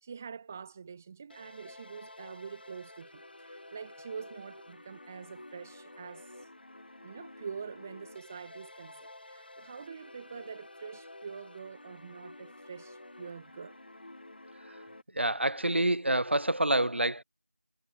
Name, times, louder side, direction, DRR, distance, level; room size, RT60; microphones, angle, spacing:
voice 1, 0.0-6.5 7.0-13.8, right 6 dB, 10° right, 1.5 m, -45 dB
sound 1, 1.3-15.0, left 2 dB, 50° left, 7.1 m, -51 dB
voice 2, 15.1-17.2, right 1 dB, 65° right, 6.1 m, -27 dB
figure-of-eight pair, 175°, 7 cm